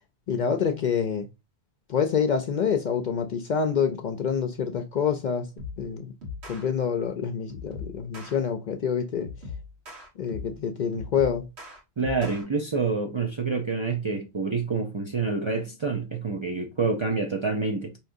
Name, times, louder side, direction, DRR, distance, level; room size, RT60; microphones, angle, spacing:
voice 1, 0.3-1.3 1.9-5.5 5.8-6.1 6.5-9.3 10.2-11.5, left 7 dB, 55° left, 0.5 m, -27 dB
sound 1, 5.6-5.9 6.2-6.7 7.5-8.4 9.2-10.6 10.9-12.4, left 4 dB, 85° right, 1.5 m, -39 dB
voice 2, 12.0-17.9, right 4 dB, 40° right, 0.4 m, -27 dB
4.8 x 2.9 x 2.6 m
omnidirectional pair, 1.1 m